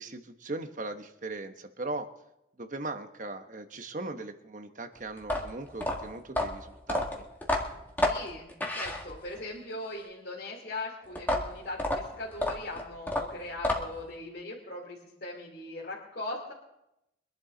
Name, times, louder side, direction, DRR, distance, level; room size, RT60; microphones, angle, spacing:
voice 1, 0.0-2.1 2.6-7.3, right 2 dB, 40° right, 7 dB, 1.1 m, -39 dB
sound 1, 5.2-9.5 11.2-14.1, left 1 dB, 10° left, 1.9 m, -30 dB
voice 2, 8.0-16.5, left 2 dB, 55° left, -5 dB, 2.9 m, -40 dB
24.5 x 11.5 x 3.9 m, 0.87 s
head